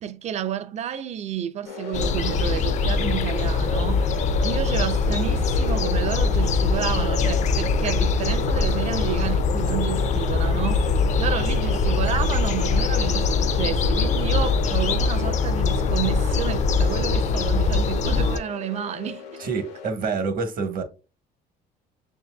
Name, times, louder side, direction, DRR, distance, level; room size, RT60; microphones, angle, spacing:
voice 1, 0.0-4.1 4.4-19.2, right 10 dB, 40° right, 0.4 m, -30 dB
sound 1, 1.6-19.9, left 6 dB, 90° left, 0.7 m, -37 dB
sound 2, 1.9-18.4, left 4 dB, 45° left, 0.4 m, -22 dB
voice 2, 19.4-20.8, right 4 dB, 60° right, 1.0 m, -27 dB
6.4 x 2.6 x 2.2 m
cardioid pair, 110°, 17 cm